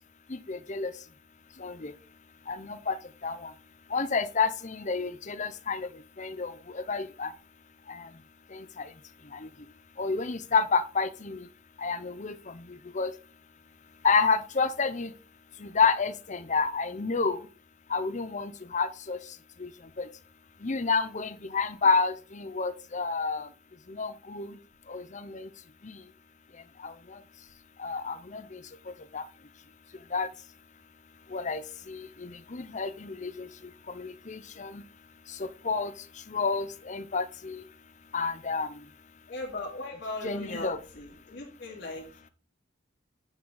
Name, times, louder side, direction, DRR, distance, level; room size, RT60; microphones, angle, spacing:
voice 1, 0.3-0.9 1.6-1.9 2.5-3.0 3.2-3.5 3.9-5.9 6.2-7.3 7.9-8.1 8.5-8.8 9.3-9.5 10.0-11.4 11.8-12.6 12.9-13.1 14.0-15.1 15.6-17.4 17.9-19.2 19.6-19.7 20.0-20.1 20.6-23.5 23.9-24.5 24.9-25.5 25.8-26.0 26.8-26.9 27.8-28.6 29.1-29.2 30.1-30.3 31.3-31.6 31.9-33.5 33.9-34.8 35.4-35.9 36.3-37.6 38.1-38.7 40.2-40.8, left 4 dB, 40° left, 12 dB, 0.8 m, -29 dB
voice 2, 39.3-42.1, left 2 dB, 55° left, -7 dB, 3.1 m, -38 dB
9.4 x 6.2 x 3.9 m, 0.38 s
head